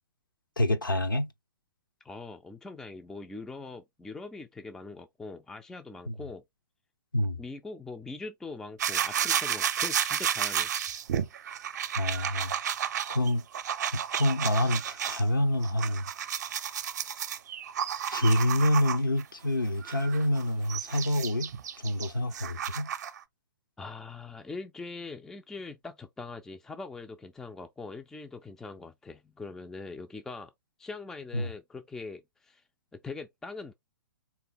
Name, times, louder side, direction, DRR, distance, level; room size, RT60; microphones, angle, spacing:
voice 1, 0.6-1.3 6.1-6.2 7.1-7.4 12.0-12.5 13.1-13.4 13.9-16.1 18.1-22.9 31.3-31.5, left 1 dB, 85° left, 0.8 m, -27 dB
voice 2, 2.0-6.4 7.4-10.7 23.8-30.5 30.8-32.6 32.9-33.7, left 3 dB, 5° left, 0.3 m, -42 dB
sound 1, 8.8-15.2 15.6-19.2 19.8-23.2, right 9 dB, 55° right, 0.6 m, -32 dB
3.8 x 3.0 x 3.7 m
figure-of-eight pair, 115°, 11 cm